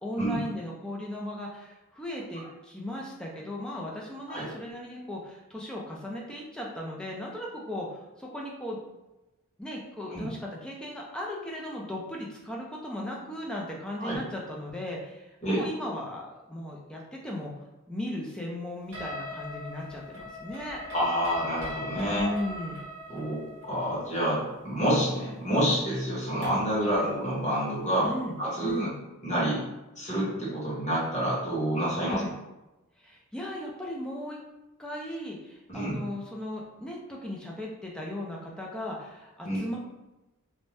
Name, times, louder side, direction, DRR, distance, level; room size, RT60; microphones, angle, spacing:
voice 1, 0.0-8.8 9.6-17.5 17.9-20.8 22.1-22.8 26.8-27.1 28.0-29.0 32.0-32.3 33.0-34.4 34.8-39.8, left 1 dB, 5° left, -3 dB, 0.4 m, -37 dB
sound 1, 18.9-26.8, left 2 dB, 55° right, 0.7 m, -40 dB
voice 2, 20.9-22.3 23.1-28.1 28.4-28.9 29.2-29.6 30.0-32.2 35.7-36.0 39.4-39.6, equal, 30° left, -8 dB, 1.1 m, -28 dB
2.6 x 2.1 x 3.3 m, 1.0 s
head